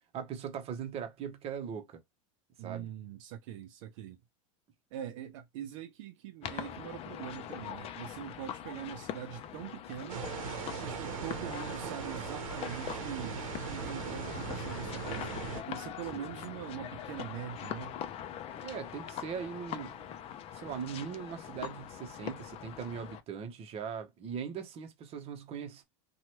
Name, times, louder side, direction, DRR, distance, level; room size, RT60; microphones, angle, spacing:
voice 1, 0.1-2.0 2.6-2.9 16.1-16.3 18.6-20.1 20.5-25.8, right 7 dB, 35° right, 0.8 m, -40 dB
voice 2, 2.6-4.2 4.9-10.3 10.8-18.0, right 10 dB, 65° right, 0.5 m, -43 dB
sound 1, 6.4-23.2, left 10 dB, 35° left, 0.5 m, -42 dB
sound 2, 10.1-15.6, right 6 dB, 90° right, 0.8 m, -39 dB
2.9 x 2.3 x 2.9 m
hypercardioid pair, 110°, 17 cm